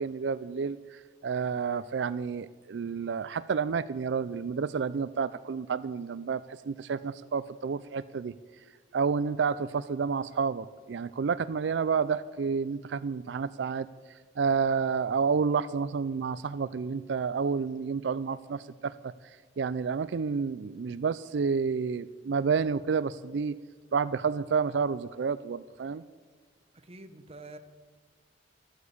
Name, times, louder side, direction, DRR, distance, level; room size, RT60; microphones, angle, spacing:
voice 1, 0.0-8.3 8.9-23.6 23.9-26.0, right 5 dB, 80° right, 15 dB, 0.4 m, -30 dB
voice 2, 26.7-27.6, right 2 dB, 35° right, 9 dB, 1.0 m, -47 dB
13.0 x 9.4 x 8.4 m, 1.4 s
head